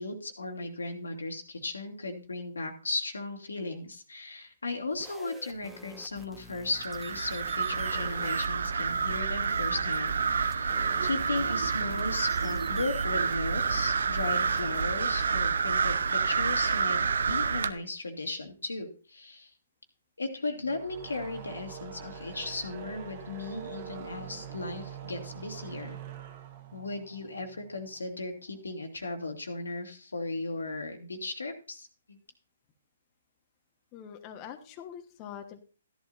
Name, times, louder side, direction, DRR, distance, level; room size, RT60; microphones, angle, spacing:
voice 1, 0.0-17.0 17.2-19.5 20.2-26.0 26.7-32.2, left 2 dB, 90° left, 4 dB, 2.2 m, -36 dB
sound 1, 4.9-14.8, right 1 dB, 5° right, 1.3 m, -51 dB
sound 2, 6.7-17.7, right 5 dB, 70° right, 0.7 m, -28 dB
sound 3, 20.6-28.0, right 8 dB, 45° right, 1.7 m, -44 dB
voice 2, 33.9-35.6, left 9 dB, 30° left, 5 dB, 1.2 m, -44 dB
13.5 x 11.0 x 2.6 m, 0.37 s
hypercardioid pair, 140°, 0 cm